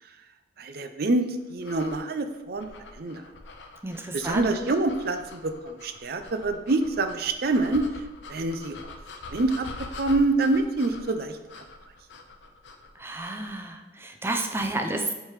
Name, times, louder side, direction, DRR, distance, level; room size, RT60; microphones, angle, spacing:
voice 1, 0.6-2.7 2.9-3.2 4.1-7.8 8.3-8.8 9.3-9.7 10.0-11.4, right 2 dB, 60° right, 8 dB, 0.6 m, -26 dB
sound 1, 1.6-13.5, left 3 dB, 90° left, 0.7 m, -44 dB
voice 2, 3.8-4.5 13.0-15.1, right 2 dB, 15° right, 5 dB, 0.6 m, -30 dB
7.4 x 3.5 x 4.8 m, 1.1 s
head